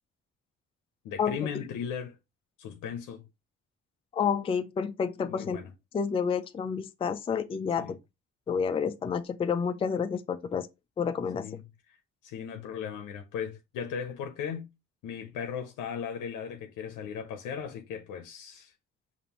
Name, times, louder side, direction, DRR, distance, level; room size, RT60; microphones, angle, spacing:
voice 1, 1.0-2.2 2.6-3.3 5.3-5.7 7.8-8.0 11.4-11.6 11.9-12.0 12.2-14.7 15.0-18.7, left 7 dB, 90° left, 0.6 m, -37 dB
voice 2, 4.1-5.6 5.9-8.0 8.5-10.7 11.0-11.5, left 6 dB, 20° left, 0.3 m, -29 dB
5.1 x 2.5 x 2.9 m
cardioid pair, 90°, 30 cm